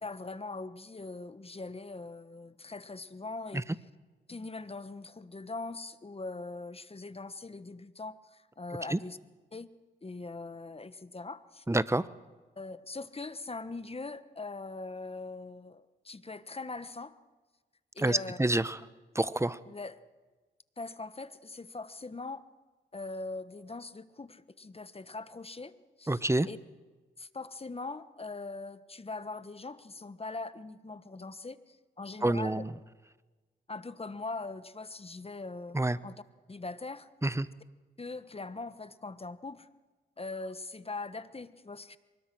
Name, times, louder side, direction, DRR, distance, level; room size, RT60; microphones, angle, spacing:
voice 1, 0.0-3.7 4.3-9.2 9.5-9.7 10.0-11.6 12.6-17.1 17.9-18.4 19.7-20.0 20.8-22.4 22.9-25.7 26.0-26.2 26.5-26.6 27.2-32.6 33.7-36.2 36.5-37.1 38.0-39.7 40.2-42.0, left 3 dB, 30° left, 14 dB, 1.3 m, -41 dB
voice 2, 11.7-12.1 18.0-18.8 19.1-19.6 26.1-26.5 32.2-32.7 35.7-36.0 37.2-37.5, right 2 dB, 15° right, 16 dB, 1.0 m, -27 dB
24.0 x 20.5 x 6.2 m, 1.3 s
supercardioid pair, 45°, 20 cm